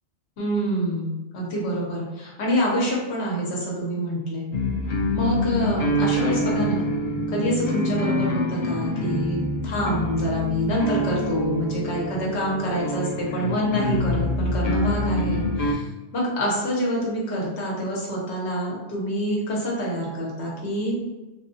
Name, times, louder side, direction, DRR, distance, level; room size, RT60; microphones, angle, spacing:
voice 1, 0.4-4.5 5.1-6.9 7.3-15.8 16.1-21.0, equal, 85° left, -4 dB, 1.2 m, -26 dB
sound 1, 4.5-15.7, left 1 dB, 50° left, 0.5 m, -26 dB
3.3 x 2.3 x 2.7 m, 1.1 s
omnidirectional pair, 1.1 m